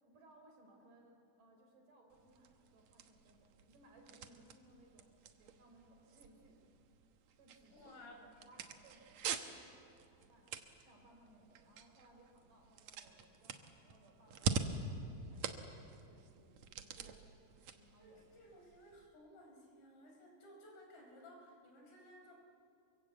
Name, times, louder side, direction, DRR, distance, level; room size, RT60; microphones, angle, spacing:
voice 1, 0.0-6.6 7.4-17.3 17.7-18.3, right 1 dB, 50° right, 2 dB, 5.5 m, -65 dB
sound 1, 2.1-19.1, right 6 dB, 80° right, 1.6 m, -46 dB
voice 2, 7.7-8.2 18.0-22.3, left 1 dB, 75° left, 1 dB, 7.0 m, -58 dB
30.0 x 23.5 x 8.3 m, 2.5 s
omnidirectional pair, 5.1 m